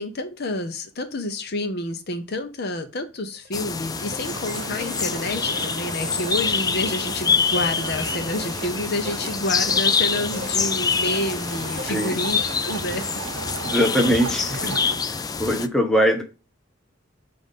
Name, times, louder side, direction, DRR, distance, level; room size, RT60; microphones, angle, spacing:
voice 1, 0.0-13.0, left 1 dB, 55° left, 0.8 m, -29 dB
sound 1, 3.3-3.5 4.0-4.3 4.6-5.0 5.2-7.3 7.5-7.9 8.4-8.5 9.0-9.2 9.7-9.9 10.3-10.6 11.1-11.2 11.7-12.0 12.4-12.6 13.0-13.2, left 1 dB, 50° right, 1.0 m, -40 dB
sound 2, 3.5-15.7, left 5 dB, 20° left, 0.4 m, -26 dB
sound 3, 4.2-15.0, right 7 dB, 90° right, 0.4 m, -37 dB
voice 2, 13.6-14.8 15.0-16.2, equal, 5° left, 1.0 m, -22 dB
7.8 x 2.6 x 5.4 m
head